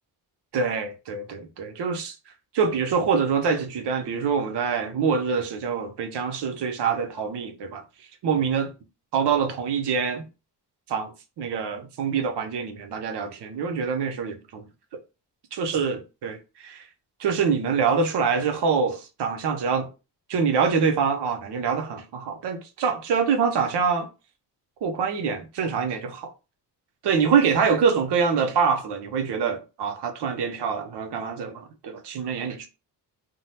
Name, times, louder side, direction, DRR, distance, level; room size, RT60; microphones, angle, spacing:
voice 1, 0.5-2.2 2.5-7.8 8.2-8.7 9.1-10.3 10.9-14.7 15.5-16.9 17.2-19.9 20.3-24.1 24.8-26.3 27.0-32.7, right 6 dB, 70° right, 0.8 m, -25 dB
3.7 x 2.0 x 2.8 m
cardioid pair, 95°, 42 cm